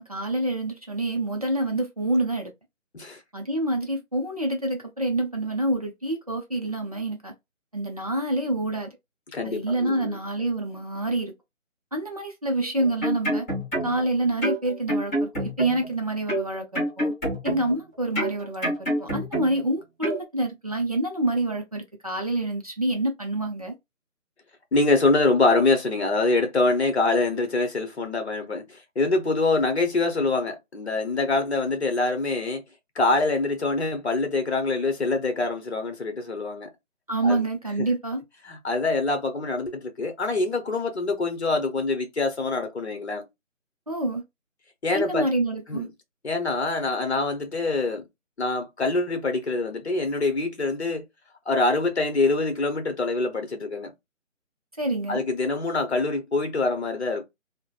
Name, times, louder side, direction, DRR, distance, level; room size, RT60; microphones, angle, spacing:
voice 1, 0.0-2.5 3.3-7.3 7.7-8.9 9.4-11.3 11.9-13.5 13.8-17.1 17.4-23.7 37.1-38.2 43.9-44.2 44.9-45.9 54.8-55.2, right 1 dB, 30° right, 0.5 m, -27 dB
voice 2, 9.3-10.2 24.7-32.6 33.0-36.7 37.2-37.5 38.4-43.3 44.8-45.3 45.7-45.9 46.2-48.0 48.4-51.1 51.5-53.9 55.1-57.2, left 3 dB, 55° left, 1.1 m, -25 dB
sound 1, 12.8-14.1 14.4-15.9 16.3-17.8 18.1-19.7 20.0-20.2, right 1 dB, 10° left, 1.3 m, -27 dB
3.6 x 2.1 x 2.4 m
figure-of-eight pair, 155°, 40 cm